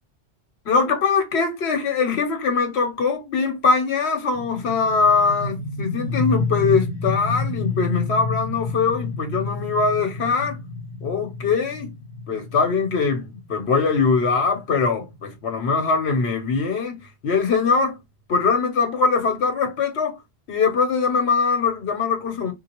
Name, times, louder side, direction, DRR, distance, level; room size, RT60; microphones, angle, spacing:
voice 1, 0.6-10.6 11.0-12.0 12.3-18.0 18.3-20.2 20.5-22.5, left 4 dB, 85° left, 1.2 m, -22 dB
sound 1, 4.3-15.8, left 3 dB, 55° left, 0.8 m, -30 dB
3.7 x 2.4 x 2.9 m
omnidirectional pair, 1.1 m